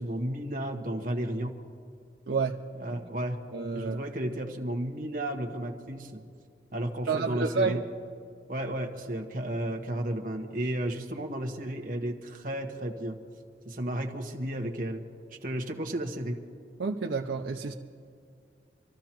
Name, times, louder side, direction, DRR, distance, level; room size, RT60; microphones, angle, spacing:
voice 1, 0.0-1.6 2.8-6.3 6.7-7.8 8.5-13.2 13.6-15.1 15.4-16.4, right 1 dB, 50° right, 2 dB, 1.3 m, -33 dB
voice 2, 2.3-2.6 3.5-4.0 7.1-7.8 16.8-17.7, right 4 dB, 85° right, 2 dB, 0.6 m, -29 dB
26.0 x 14.0 x 3.0 m, 2.3 s
head